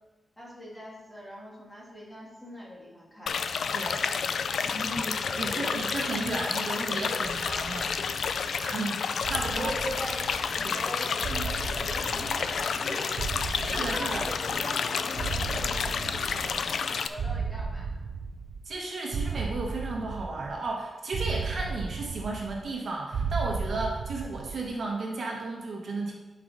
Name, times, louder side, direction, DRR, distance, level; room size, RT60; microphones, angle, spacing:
voice 1, 0.4-3.4 4.6-5.8 9.5-13.3 13.6-17.9, equal, 10° left, -5 dB, 1.9 m, -40 dB
sound 1, 3.3-17.1, left 6 dB, 75° left, 0.4 m, -30 dB
voice 2, 5.4-9.7 10.6-10.8 13.6-14.2 18.6-26.1, right 3 dB, 55° right, -1 dB, 1.3 m, -34 dB
sound 2, 7.2-8.6 9.2-10.8 11.2-12.8 13.2-14.8 15.2-16.8 17.2-18.8 19.1-20.7 21.1-22.8 23.1-24.8, right 5 dB, 90° right, 0.5 m, -35 dB
11.0 x 4.8 x 4.0 m, 1.2 s
wide cardioid pair, 175°, 0 cm